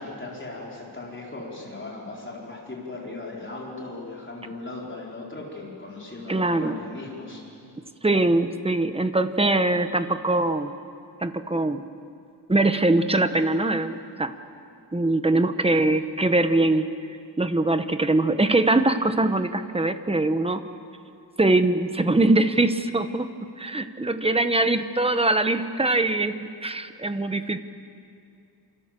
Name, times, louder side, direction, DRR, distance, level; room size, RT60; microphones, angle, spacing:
voice 1, 0.0-7.4, left 2 dB, 30° left, -2 dB, 4.7 m, -37 dB
voice 2, 6.3-6.8 8.0-10.7 11.2-11.9 12.5-14.3 14.9-16.9 17.4-20.6 21.4-23.3 23.6-26.3 26.6-27.6, right 2 dB, 15° right, 9 dB, 1.1 m, -22 dB
28.0 x 27.5 x 7.6 m, 2.4 s
wide cardioid pair, 170°, 41 cm